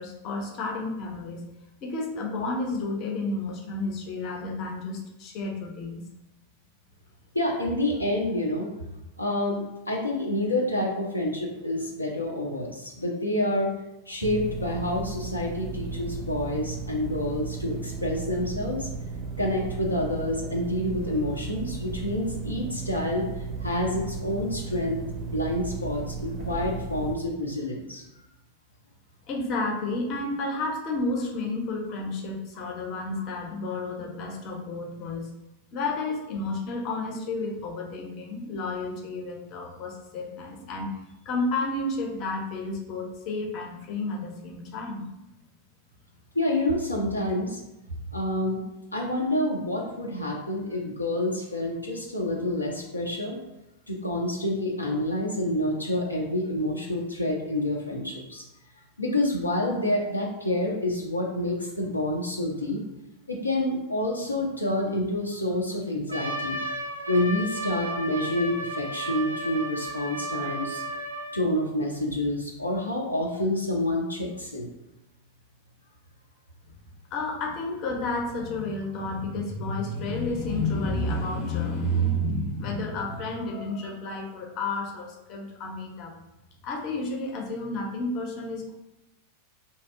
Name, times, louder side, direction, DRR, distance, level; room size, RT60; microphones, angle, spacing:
voice 1, 0.0-1.4 1.8-6.0 29.3-35.3 35.7-40.9 41.2-45.1 77.1-86.1 86.6-88.7, left 2 dB, 40° left, 0 dB, 0.6 m, -31 dB
voice 2, 7.3-8.7 9.2-13.8 14.1-18.9 19.4-28.0 46.3-47.6 48.1-48.6 48.9-53.4 53.9-58.4 59.0-62.8 63.3-66.6 67.1-70.8 71.3-74.7, left 1 dB, 85° left, -2 dB, 0.5 m, -28 dB
sound 1, 14.2-27.2, right 4 dB, 30° right, 0.5 m, -35 dB
Trumpet, 66.1-71.4, right 1 dB, 85° right, 0.4 m, -33 dB
2.7 x 2.3 x 3.5 m, 0.92 s
figure-of-eight pair, 90°, 0 cm